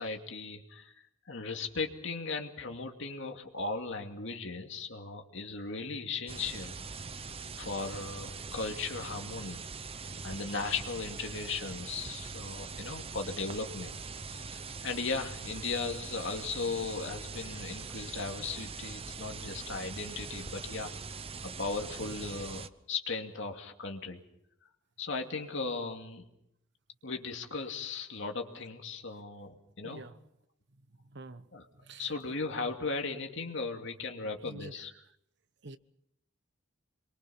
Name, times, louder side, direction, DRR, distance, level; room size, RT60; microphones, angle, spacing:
voice 1, 0.0-6.8 7.6-9.6 10.2-13.9 14.3-20.9 21.4-24.2 25.0-26.2 27.0-30.0 31.5-31.7 32.0-34.9, left 4 dB, 65° left, 2.5 m, -37 dB
sound 1, 6.3-22.7, right 4 dB, 30° right, 0.8 m, -42 dB
voice 2, 29.8-30.2 31.0-31.5 31.8-32.4 34.4-34.9 35.6-35.8, right 2 dB, 60° right, 1.1 m, -47 dB
27.0 x 23.0 x 5.7 m
head